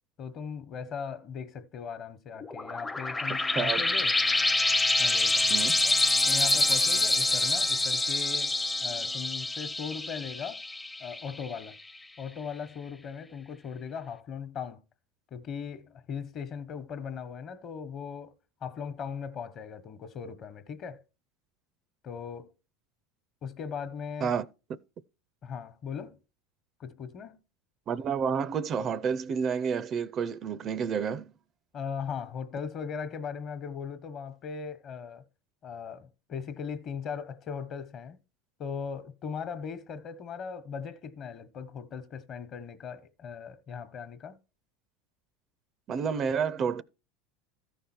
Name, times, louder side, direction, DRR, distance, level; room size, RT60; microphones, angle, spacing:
voice 1, 0.2-4.2 5.0-6.0 6.2-8.5 8.8-10.6 11.0-11.8 12.2-14.8 15.3-18.3 18.6-21.0 22.0-22.5 23.4-24.4 25.4-26.2 26.8-27.4 31.7-35.2 35.6-38.2 38.6-44.4, left 6 dB, 40° left, 1.2 m, -39 dB
sound 1, 2.4-11.6, left 2 dB, 10° left, 0.6 m, -26 dB
voice 2, 3.5-3.8 5.5-5.8 24.2-24.5 27.9-31.3 45.9-46.8, right 6 dB, 40° right, 0.5 m, -30 dB
13.5 x 5.2 x 4.4 m
supercardioid pair, 105°, 0 cm